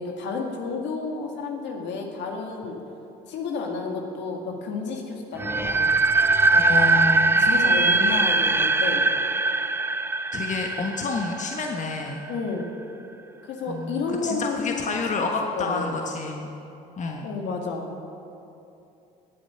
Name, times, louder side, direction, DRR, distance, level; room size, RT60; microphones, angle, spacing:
voice 1, 0.0-2.8 3.3-5.9 7.4-9.1 12.3-12.7 13.4-15.0 15.6-16.0 17.2-17.9, left 4 dB, 70° left, 2 dB, 2.1 m, -31 dB
sound 1, 5.4-12.3, right 3 dB, 10° right, 0.4 m, -21 dB
voice 2, 6.4-7.4 10.3-12.2 13.7-16.5 17.0-17.3, left 4 dB, 40° left, 2 dB, 1.3 m, -29 dB
16.5 x 8.2 x 5.7 m, 2.7 s
supercardioid pair, 70°, 19 cm